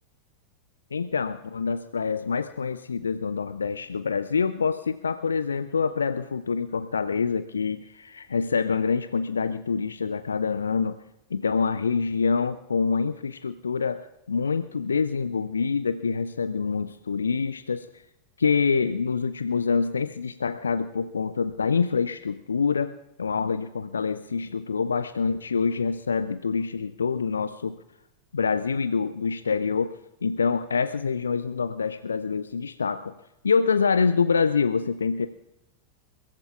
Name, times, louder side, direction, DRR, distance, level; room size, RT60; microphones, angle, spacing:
voice 1, 0.9-11.0 11.3-18.0 18.4-22.9 23.2-27.8 28.3-33.1 33.4-35.3, left 5 dB, 75° left, 11 dB, 0.5 m, -26 dB
29.5 x 15.0 x 2.4 m, 0.89 s
figure-of-eight pair, 90°, 0 cm